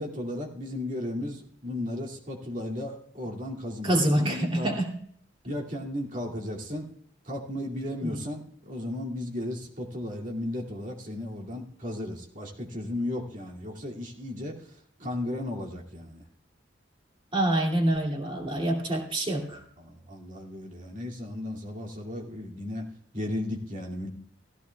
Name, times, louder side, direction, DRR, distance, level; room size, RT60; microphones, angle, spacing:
voice 1, 0.0-4.7 5.4-6.9 7.2-14.7 15.0-16.2 19.8-24.1, left 1 dB, 45° right, -2 dB, 2.5 m, -35 dB
voice 2, 3.8-4.9 8.0-8.2 17.3-19.6, right 1 dB, 30° right, 0 dB, 2.7 m, -26 dB
17.0 x 16.0 x 2.3 m, 0.66 s
head